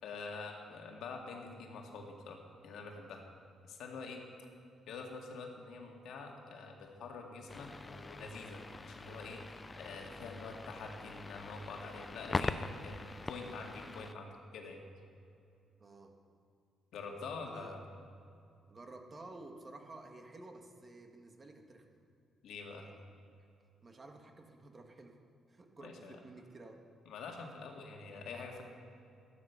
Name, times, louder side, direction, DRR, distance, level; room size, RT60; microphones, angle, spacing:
voice 1, 0.0-2.4 2.6-3.2 3.7-4.2 4.9-14.8 16.9-17.8 22.4-22.9 25.8-26.2 27.1-28.6, left 4 dB, 80° left, 2 dB, 2.0 m, -46 dB
sound 1, 7.5-14.1, left 3 dB, 25° left, 0.6 m, -42 dB
voice 2, 15.8-16.2 17.4-17.8 18.7-21.9 22.8-23.0 23.8-25.2 25.5-26.8, right 2 dB, 30° right, 3 dB, 1.8 m, -52 dB
13.0 x 11.5 x 5.9 m, 2.6 s
cardioid pair, 90°, 0 cm